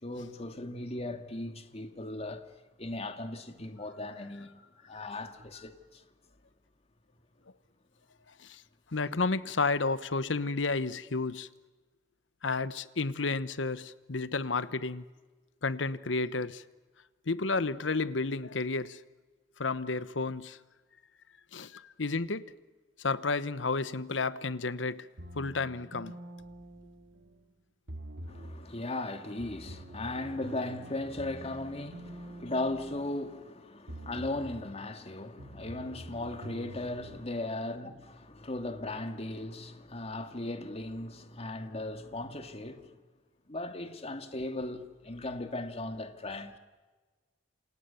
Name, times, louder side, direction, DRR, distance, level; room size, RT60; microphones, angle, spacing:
voice 1, 0.0-2.4 2.8-6.0 28.3-43.0 43.5-46.6, left 2 dB, 35° left, 2.1 m, -37 dB
voice 2, 8.9-11.5 12.4-15.0 15.6-16.6 17.3-19.0 19.6-20.6 21.5-22.5 23.0-25.1 25.3-26.2, left 3 dB, 85° left, 1.1 m, -31 dB
sound 1, 25.2-27.4 27.9-28.7 29.4-33.5 33.9-34.7 35.4-37.2, right 1 dB, 85° right, 2.1 m, -46 dB
28.5 x 28.0 x 7.0 m
head